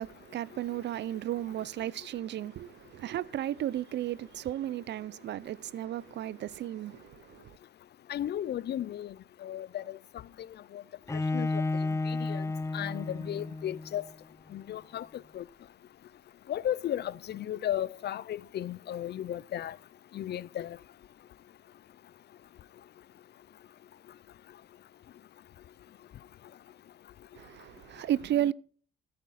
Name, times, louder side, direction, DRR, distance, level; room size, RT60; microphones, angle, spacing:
voice 1, 0.0-7.5 27.4-28.5, right 12 dB, 65° right, 0.5 m, -34 dB
voice 2, 8.1-9.1 9.4-10.0 10.7-10.8 11.3-11.5 12.1-12.4 12.7-14.0 14.5-15.1 15.3-15.4 16.5-19.7 20.1-20.8, left 11 dB, 55° left, 0.5 m, -34 dB
Bowed string instrument, 11.1-14.0, left 3 dB, 15° left, 0.7 m, -32 dB
14.0 x 8.6 x 4.2 m
cardioid pair, 90°, 20 cm